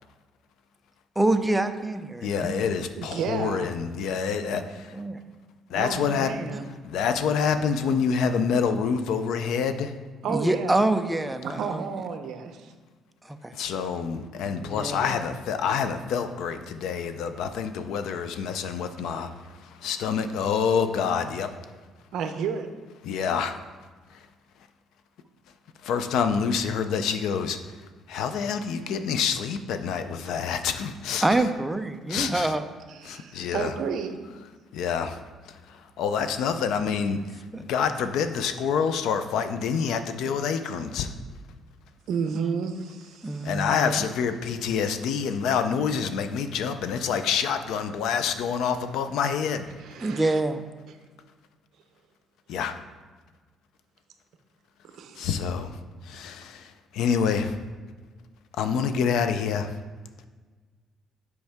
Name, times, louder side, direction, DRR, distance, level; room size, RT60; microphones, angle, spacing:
voice 1, 1.2-2.6 4.4-4.7 4.9-5.2 10.3-11.8 13.2-13.5 14.4-15.0 31.2-32.7 37.5-37.6 43.2-44.0 50.0-50.6, right 2 dB, 5° right, 7 dB, 0.3 m, -26 dB
voice 2, 2.2-5.0 5.7-6.3 6.8-9.9 13.5-21.6 23.0-23.6 24.1-24.3 25.8-31.4 32.1-32.5 33.0-33.7 34.7-35.2 35.7-41.1 43.4-49.8 52.5-52.7 55.1-57.6 58.5-59.8, left 6 dB, 70° left, 9 dB, 0.4 m, -27 dB
voice 3, 3.0-3.7 5.7-6.7 10.2-10.8 11.4-12.7 22.1-22.7 30.4-30.5 32.9-34.2 42.1-43.5 49.8-50.4 54.9-55.3, right 6 dB, 60° right, 7 dB, 0.6 m, -32 dB
7.9 x 4.7 x 3.5 m, 1.4 s
cardioid pair, 175°, 0 cm